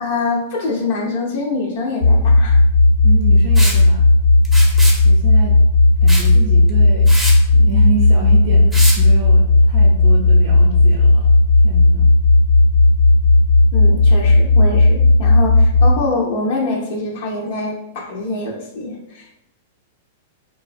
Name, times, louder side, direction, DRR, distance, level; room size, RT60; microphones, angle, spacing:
voice 1, 0.0-2.6 13.7-19.4, left 3 dB, 60° left, -1 dB, 0.5 m, -24 dB
sound 1, 2.0-16.0, left 2 dB, 85° left, 1.1 m, -12 dB
voice 2, 3.0-4.1 5.0-5.5 6.0-7.1 7.5-11.3 11.6-12.1, right 4 dB, 55° right, -1 dB, 0.5 m, -27 dB
Liquid, 3.6-3.8 4.5-5.0 6.1-6.3 6.7-6.8 7.1-7.4 8.7-9.0, right 1 dB, 10° right, 0.5 m, -24 dB
2.5 x 2.2 x 2.3 m, 0.85 s
hypercardioid pair, 110°, 0 cm